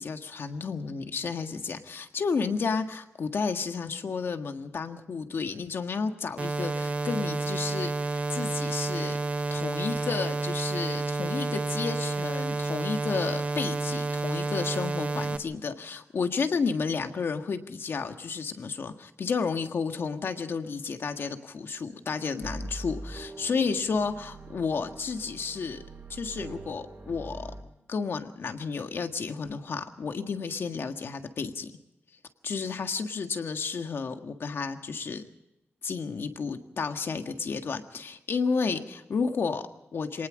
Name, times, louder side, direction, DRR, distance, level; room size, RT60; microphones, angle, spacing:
voice 1, 0.0-7.9 8.3-9.2 9.5-25.8 26.1-27.5 27.9-31.7 32.4-35.3 35.8-40.3, left 5 dB, 65° left, 6 dB, 1.7 m, -32 dB
sound 1, 6.4-15.4, right 3 dB, 35° right, 1.0 m, -30 dB
sound 2, 22.4-27.6, right 2 dB, 50° right, 5.1 m, -42 dB
26.0 x 19.0 x 5.2 m, 0.90 s
wide cardioid pair, 135°, 4 cm